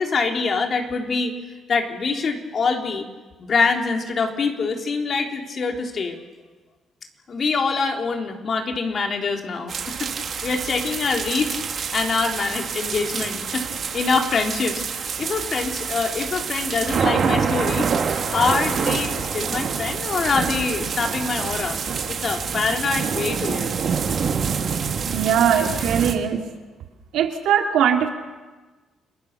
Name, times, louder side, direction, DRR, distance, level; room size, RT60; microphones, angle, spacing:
voice 1, 0.0-1.3 1.7-3.1 3.4-6.2 7.3-10.1 10.4-11.6 11.9-13.7 13.9-14.9 15.2-17.9 18.3-21.8 22.1-23.7, left 4 dB, 50° left, 3 dB, 3.6 m, -24 dB
sound 1, 9.7-26.1, right 6 dB, 55° right, 3.2 m, -26 dB
voice 2, 25.1-26.5 27.1-28.1, right 8 dB, 85° right, 3 dB, 2.9 m, -20 dB
30.0 x 21.5 x 6.8 m, 1.3 s
cardioid pair, 90°, 0 cm